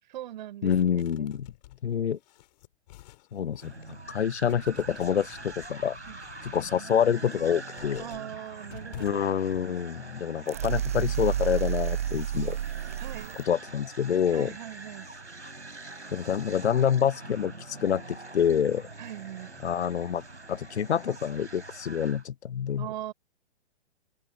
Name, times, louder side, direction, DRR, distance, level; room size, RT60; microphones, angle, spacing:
voice 1, 0.1-0.7 1.2-1.3 6.1-6.2 8.0-9.2 13.0-13.4 14.3-15.1 19.0-19.5 22.8-23.1, right 13 dB, 45° right, 4.4 m, -40 dB
voice 2, 0.6-1.5 1.8-2.2 3.3-6.0 6.5-8.0 9.0-12.6 13.5-14.5 16.1-17.5 17.8-18.8 19.6-20.2 20.5-22.9, left 8 dB, 75° left, 0.6 m, -27 dB
sound 1, 0.6-4.0 4.4-6.7 7.2-9.6, left 17 dB, 40° left, 4.4 m, -51 dB
sound 2, 3.6-22.3, right 3 dB, 85° right, 3.4 m, -44 dB
sound 3, 10.5-13.4, right 10 dB, 15° right, 0.3 m, -30 dB
figure-of-eight pair, 120°, 34 cm